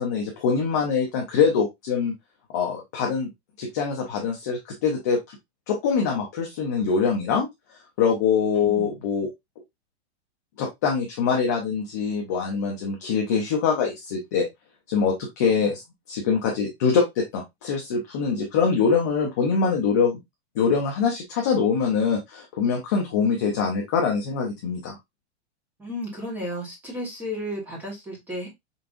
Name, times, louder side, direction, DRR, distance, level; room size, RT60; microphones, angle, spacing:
voice 1, 0.0-2.1 2.5-3.3 3.6-5.4 5.7-7.5 8.0-9.3 10.6-14.5 14.9-15.8 16.1-20.2 20.6-25.0, left 5 dB, 15° left, -1 dB, 0.4 m, -24 dB
voice 2, 8.5-8.9 25.8-28.5, equal, 5° right, -2 dB, 1.1 m, -33 dB
5.3 x 3.4 x 2.4 m, 0.19 s
supercardioid pair, 175°, 33 cm